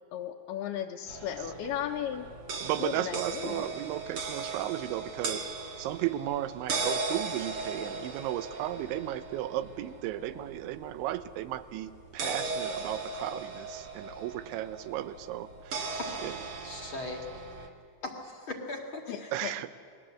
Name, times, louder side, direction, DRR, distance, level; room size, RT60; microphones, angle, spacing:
voice 1, 0.1-2.3 2.8-3.7 19.1-19.5, left 10 dB, 75° left, -1 dB, 2.7 m, -35 dB
sound 1, 1.1-17.7, right 3 dB, 55° right, 1.5 m, -38 dB
voice 2, 2.6-5.4 5.8-16.5 19.3-19.7, right 13 dB, 85° right, 12 dB, 3.2 m, -35 dB
voice 3, 16.6-17.7 18.0-19.3, left 2 dB, 45° left, 2 dB, 1.7 m, -39 dB
29.0 x 21.0 x 7.6 m, 2.3 s
omnidirectional pair, 5.2 m